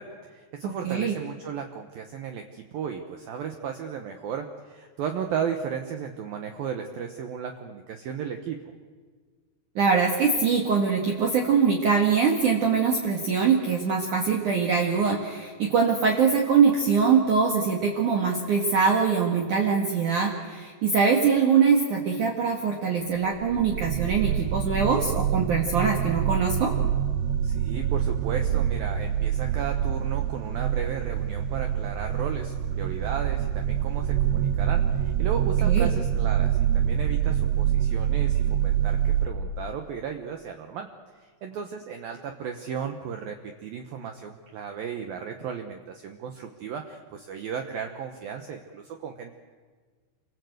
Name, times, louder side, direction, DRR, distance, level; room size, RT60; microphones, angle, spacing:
voice 1, 0.0-8.6 27.4-40.9 41.2-49.4, right 7 dB, 70° right, 5 dB, 2.4 m, -35 dB
voice 2, 0.6-1.2 9.8-26.7 35.6-35.9, right 5 dB, 55° right, 0 dB, 2.7 m, -23 dB
sound 1, 23.4-39.3, right 10 dB, 85° right, 3.5 m, -25 dB
28.5 x 24.5 x 7.9 m, 1.5 s
omnidirectional pair, 5.5 m